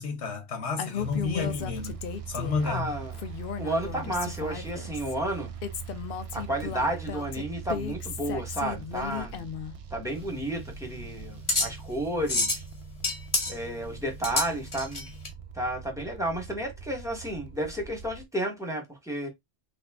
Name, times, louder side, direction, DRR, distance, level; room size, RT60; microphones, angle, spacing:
voice 1, 0.0-2.0 2.3-2.9, left 5 dB, 80° left, 1.2 m, -31 dB
Female speech woman speaking, 0.8-2.7 3.1-5.1 5.6-9.7, left 8 dB, 65° left, 0.7 m, -36 dB
sound 1, 1.0-18.2, right 8 dB, 60° right, 0.3 m, -42 dB
voice 2, 2.6-3.2 3.6-5.5 6.3-9.5 9.9-12.6 13.5-15.1 15.5-19.3, right 1 dB, 5° right, 1.1 m, -32 dB
sound 2, 10.1-15.3, left 2 dB, 30° left, 1.1 m, -30 dB
3.4 x 2.3 x 3.5 m
omnidirectional pair, 1.1 m